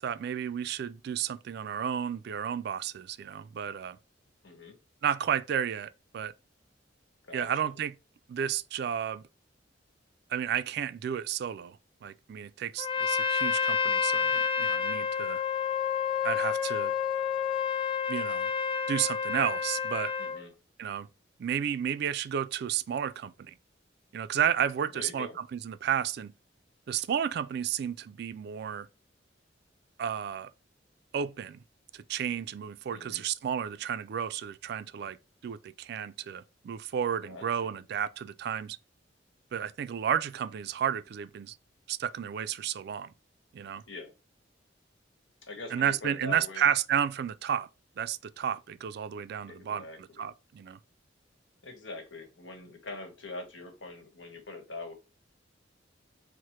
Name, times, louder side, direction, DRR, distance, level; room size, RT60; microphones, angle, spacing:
voice 1, 0.0-4.0 5.0-6.3 7.3-8.0 8.3-9.2 10.3-15.4 16.2-16.9 18.1-18.5 18.9-20.1 20.8-21.1 21.4-23.5 24.1-26.3 26.9-28.9 30.0-30.5 31.1-31.6 31.9-35.2 35.4-38.8 39.5-41.6 41.9-43.1 43.5-43.8 45.7-47.7 48.0-50.8, right 8 dB, 60° right, 0.3 m, -32 dB
voice 2, 4.4-4.8 7.2-7.8 20.2-20.5 24.9-25.4 32.9-33.2 37.2-37.8 43.9-44.1 45.4-46.7 49.5-50.3 51.6-54.9, left 3 dB, 85° left, 1.1 m, -43 dB
Trumpet, 12.8-20.4, left 7 dB, 25° left, 0.3 m, -29 dB
4.7 x 2.1 x 4.2 m
head